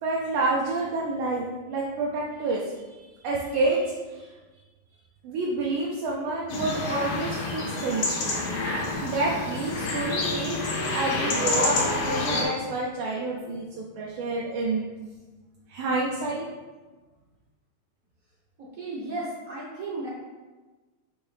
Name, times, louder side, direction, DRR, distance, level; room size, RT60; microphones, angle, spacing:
voice 1, 0.0-4.3 5.2-8.1 9.0-14.8 15.7-16.4, right 2 dB, 80° right, -3 dB, 1.4 m, -29 dB
sound 1, 6.5-12.4, left 2 dB, 80° left, 1.8 m, -28 dB
voice 2, 18.6-20.1, right 2 dB, 55° right, -5 dB, 1.0 m, -34 dB
5.3 x 3.0 x 3.2 m, 1.3 s
omnidirectional pair, 2.3 m